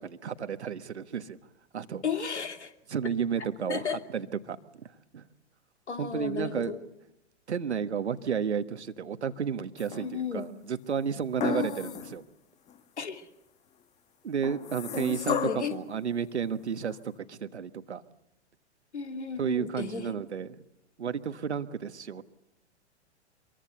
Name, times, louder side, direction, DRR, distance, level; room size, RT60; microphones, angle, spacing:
voice 1, 0.0-1.4 1.7-2.0 2.9-4.8 5.1-5.3 6.0-6.7 7.5-12.2 14.2-18.0 19.4-20.6 21.0-22.2, right 7 dB, 75° right, 11 dB, 1.5 m, -32 dB
voice 2, 2.0-2.7 3.7-4.0 5.9-6.8 9.9-10.5 11.4-11.9 13.0-13.3 14.9-15.8 18.9-20.1, left 6 dB, 75° left, 6 dB, 2.8 m, -34 dB
sound 1, 9.8-10.4 11.4-12.2 12.7-12.8 14.4-15.8 16.9-17.0, left 9 dB, 20° left, 1.1 m, -34 dB
25.0 x 23.0 x 6.8 m, 0.85 s
figure-of-eight pair, 105°, 34 cm